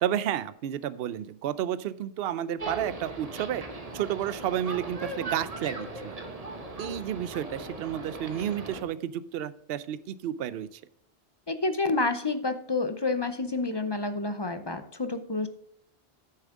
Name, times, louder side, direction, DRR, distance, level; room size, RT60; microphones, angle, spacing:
voice 1, 0.0-3.6 3.9-6.2 6.8-10.8, right 10 dB, 70° right, 15 dB, 0.8 m, -31 dB
sound 1, 2.6-8.8, right 2 dB, 35° right, 1.2 m, -38 dB
voice 2, 11.5-15.5, left 3 dB, 30° left, 10 dB, 0.5 m, -29 dB
9.1 x 7.1 x 3.6 m, 0.70 s
omnidirectional pair, 1.1 m